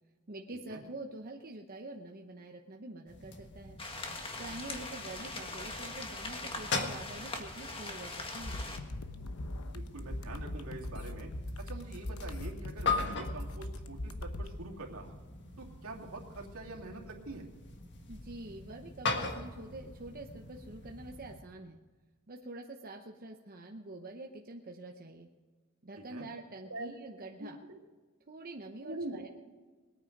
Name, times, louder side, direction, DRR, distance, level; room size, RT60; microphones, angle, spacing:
voice 1, 0.3-3.8 4.4-8.6 18.1-21.8 22.3-25.3 25.8-27.6 28.3-29.3, right 2 dB, 45° right, 2 dB, 0.9 m, -46 dB
sound 1, 3.1-21.4, left 4 dB, 55° left, 1.6 m, -41 dB
sound 2, 3.8-8.8, left 2 dB, 25° left, 1.6 m, -41 dB
sound 3, 8.4-14.5, left 1 dB, 80° left, 1.0 m, -40 dB
voice 2, 9.7-11.3 11.7-15.1 15.6-17.4 26.1-26.3 26.7-26.9 27.4-27.8 28.8-29.3, right 2 dB, 75° right, 0 dB, 2.7 m, -44 dB
21.0 x 9.3 x 5.3 m, 1.4 s
head